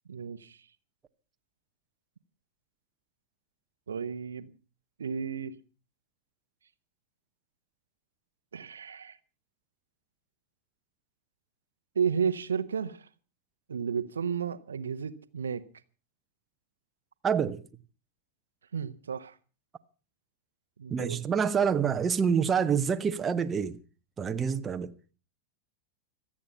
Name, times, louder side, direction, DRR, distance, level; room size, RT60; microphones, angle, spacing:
voice 1, 0.1-0.6 3.9-4.5 5.0-5.6 8.5-9.2 11.9-13.1 13.7-15.6 18.7-19.4 20.8-21.2, right 6 dB, 70° right, 1.0 m, -32 dB
voice 2, 17.2-17.6 20.9-23.8 24.2-24.9, right 7 dB, 20° right, 1.0 m, -27 dB
26.0 x 8.7 x 5.6 m
figure-of-eight pair, 90°, 0 cm